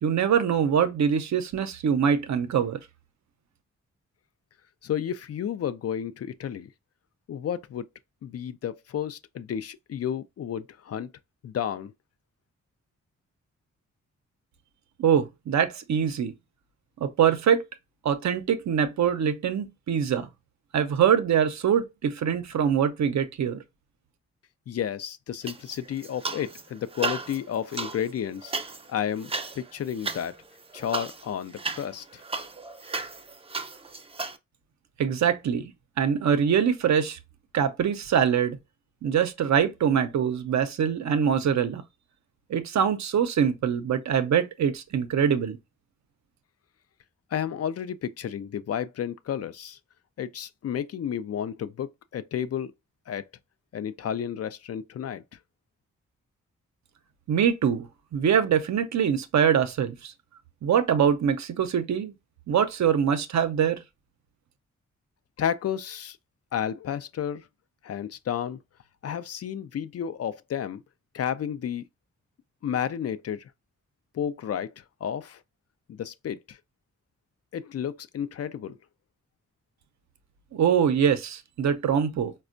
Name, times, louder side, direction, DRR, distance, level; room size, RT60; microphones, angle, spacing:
voice 1, 0.0-2.8 15.0-16.3 17.0-17.7 18.0-20.3 20.7-23.6 35.0-35.7 36.0-37.2 37.5-38.6 39.0-41.8 42.5-45.6 57.3-57.9 58.1-60.1 60.6-62.1 62.5-63.8 80.5-82.3, right 8 dB, 65° right, 0.6 m, -24 dB
voice 2, 4.8-6.7 7.3-7.9 8.2-11.1 11.4-11.9 24.7-28.5 28.9-30.4 30.7-32.2 47.3-49.8 50.2-52.7 53.1-53.2 53.7-55.2 65.4-66.2 66.5-67.5 67.8-68.6 69.0-70.8 71.1-71.9 72.6-73.5 74.1-75.4 75.9-76.6 77.5-78.8, left 9 dB, 55° left, 0.4 m, -32 dB
sound 1, 25.4-26.6 26.9-34.4, right 3 dB, 20° right, 0.5 m, -35 dB
4.1 x 2.2 x 2.5 m
supercardioid pair, 50°, 31 cm